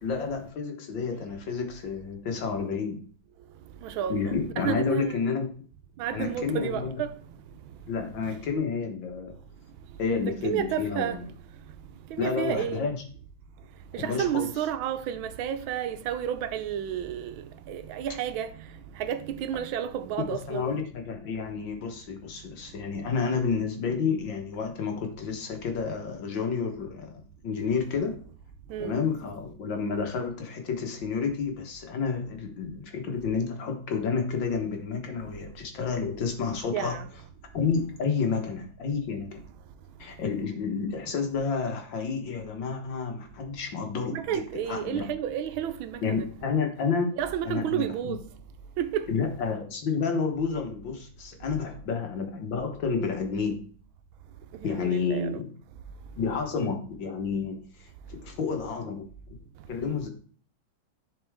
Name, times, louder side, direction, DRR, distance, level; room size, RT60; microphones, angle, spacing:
voice 1, 0.0-3.0 4.1-5.5 6.1-7.0 7.9-9.3 10.0-11.2 12.2-13.0 13.9-14.5 20.5-28.2 28.8-37.0 37.5-39.4 40.0-45.1 46.0-47.1 47.5-48.2 49.1-53.6 54.6-55.4 56.2-59.1 59.7-60.1, left 5 dB, 70° left, 2.0 m, -30 dB
voice 2, 3.8-5.2 6.0-7.1 10.2-11.2 12.1-12.9 13.9-18.5 19.0-20.8 28.7-29.0 36.7-37.1 44.1-46.2 47.2-48.2 48.8-49.1 54.8-55.3, right 9 dB, 90° right, 1.5 m, -31 dB
10.5 x 4.3 x 3.5 m
omnidirectional pair, 2.1 m